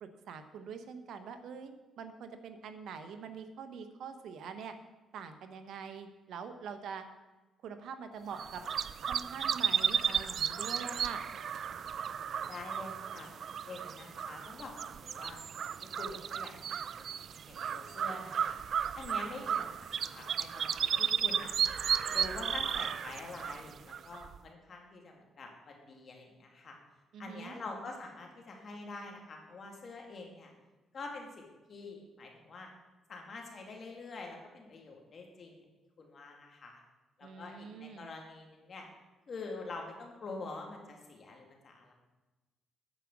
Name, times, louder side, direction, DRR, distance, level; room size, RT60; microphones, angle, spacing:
voice 1, 0.0-1.7 2.0-4.7 5.1-7.0 7.6-8.6 9.0-11.2 27.1-27.5 37.2-38.1, right 6 dB, 75° right, 9 dB, 1.0 m, -44 dB
sound 1, 8.3-24.4, right 8 dB, 60° right, 0.3 m, -34 dB
voice 2, 12.1-13.3 13.6-17.0 17.5-18.6 19.0-21.6 22.1-26.8 27.2-30.5 30.9-32.7 33.1-35.6 36.0-36.8 37.2-38.9 39.3-41.9, left 3 dB, 50° left, 1 dB, 2.3 m, -46 dB
9.1 x 6.0 x 7.2 m, 1.1 s
cardioid pair, 90°, 0 cm